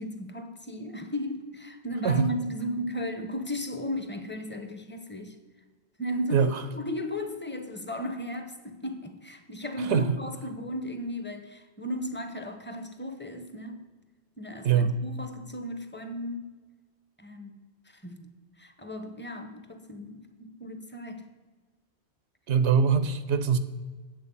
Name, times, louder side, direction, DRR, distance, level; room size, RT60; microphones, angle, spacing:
voice 1, 0.0-5.4 6.0-13.8 14.4-16.5 17.2-17.5 17.8-21.3, equal, 10° left, 7 dB, 0.8 m, -35 dB
voice 2, 6.3-6.6 9.9-10.2 14.6-15.0 22.5-23.6, right 6 dB, 90° right, 11 dB, 0.9 m, -23 dB
9.1 x 7.5 x 5.4 m, 1.3 s
omnidirectional pair, 1.1 m